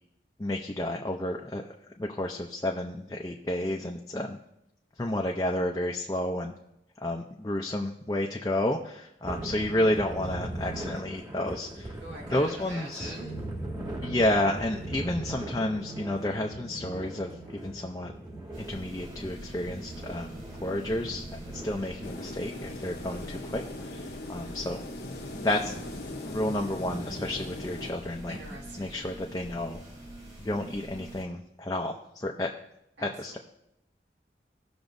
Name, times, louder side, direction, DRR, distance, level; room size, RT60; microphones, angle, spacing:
voice 1, 0.4-1.6 2.0-4.4 5.0-6.5 7.0-12.0 12.3-13.1 14.0-18.2 18.6-24.8 25.3-25.7 26.2-28.4 28.8-29.8 30.4-32.5 33.0-33.4, left 1 dB, 20° left, 1 dB, 0.5 m, -31 dB
sound 1, 9.2-28.6, right 1 dB, 25° right, 1.5 m, -41 dB
voice 2, 12.0-13.4 28.3-29.2 33.0-33.4, right 1 dB, 80° right, -2 dB, 2.0 m, -45 dB
sound 2, 18.5-31.2, right 1 dB, 45° right, 3.3 m, -45 dB
sound 3, 22.0-27.9, left 2 dB, 60° left, 0.9 m, -40 dB
18.0 x 6.1 x 2.6 m, 0.83 s
head